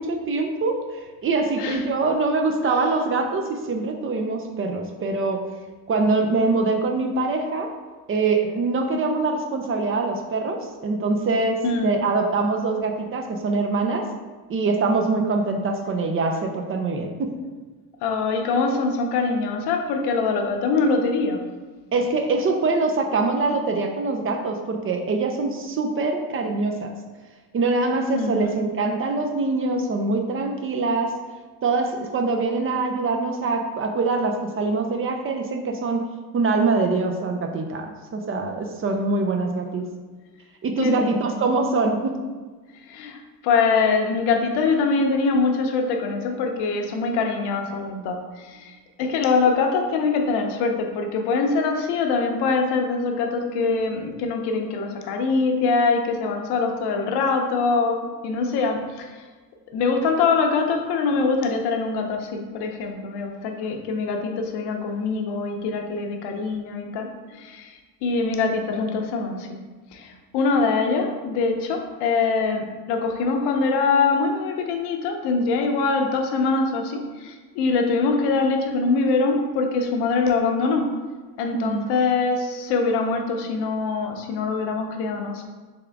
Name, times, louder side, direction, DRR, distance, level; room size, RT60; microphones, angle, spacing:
voice 1, 0.0-5.4 5.9-7.7 8.1-14.0 14.5-17.3 21.9-26.9 27.5-31.1 31.6-36.1 36.3-39.8 40.6-42.2 81.5-81.9, right 3 dB, 35° right, 4 dB, 0.5 m, -24 dB
voice 2, 11.6-12.0 18.0-21.4 28.1-28.5 40.8-41.5 42.9-59.2 59.7-69.6 69.9-80.9 81.4-85.5, left 4 dB, 80° left, 3 dB, 0.7 m, -23 dB
3.6 x 3.5 x 3.4 m, 1.3 s
cardioid pair, 105°, 39 cm